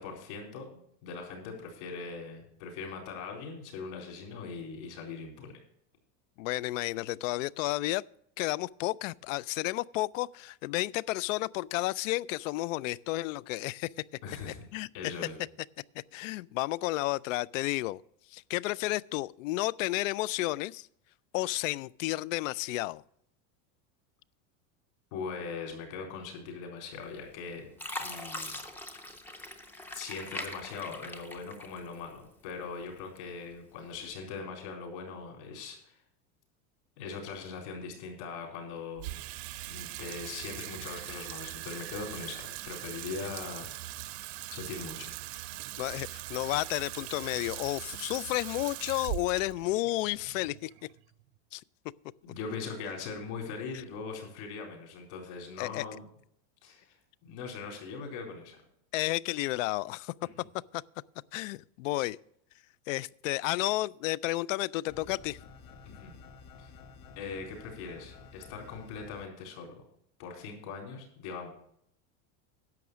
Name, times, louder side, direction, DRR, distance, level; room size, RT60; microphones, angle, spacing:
voice 1, 0.0-5.5 14.2-14.6 14.9-15.3 25.1-27.7 28.0-28.6 29.9-36.0 37.0-39.0 39.7-43.7 44.5-45.1 52.2-56.0 56.6-56.9 57.2-58.6 60.2-60.5 65.8-66.1 66.6-66.7 67.2-69.8 70.2-71.5, left 5 dB, 60° left, 4.2 m, -41 dB
voice 2, 6.4-8.0 8.4-13.9 14.7-14.9 15.9-18.0 18.3-20.9 21.3-23.0 45.8-50.7 51.5-51.6 55.6-55.9 58.9-60.1 60.7-60.8 61.3-62.2 62.9-65.4, left 18 dB, 85° left, 0.5 m, -32 dB
Fill (with liquid), 27.0-27.4 27.8-32.2 32.6-33.4 34.0-34.1, left 1 dB, 5° left, 0.4 m, -41 dB
Water tap faucet / Sink (filling or washing), 39.0-51.4, right 16 dB, 55° right, 0.6 m, -41 dB
sound 1, 64.9-69.3, left 5 dB, 35° left, 1.2 m, -51 dB
10.5 x 7.0 x 6.2 m
supercardioid pair, 170°, 38 cm